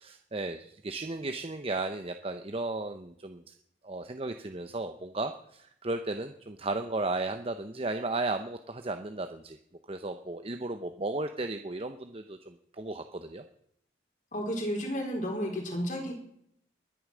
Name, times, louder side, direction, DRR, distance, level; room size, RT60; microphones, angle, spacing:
voice 1, 0.0-3.4 3.8-9.6 9.9-13.4, right 2 dB, 30° right, 7 dB, 0.8 m, -35 dB
voice 2, 14.3-16.1, equal, 45° left, 1 dB, 4.4 m, -32 dB
22.0 x 10.0 x 6.3 m, 0.71 s
head